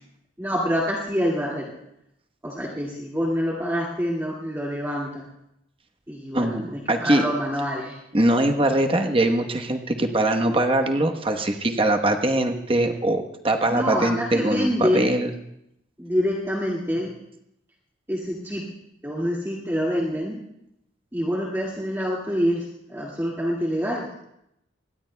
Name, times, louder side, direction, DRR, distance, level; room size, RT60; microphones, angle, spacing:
voice 1, 0.4-1.7 2.4-5.3 6.1-8.0 13.7-15.1 16.0-17.1 18.1-18.6 19.0-20.4 21.1-24.0, equal, 10° right, -5 dB, 2.1 m, -26 dB
voice 2, 6.3-7.2 8.1-15.3, right 1 dB, 30° right, 4 dB, 1.1 m, -22 dB
26.0 x 21.5 x 2.3 m, 0.81 s
head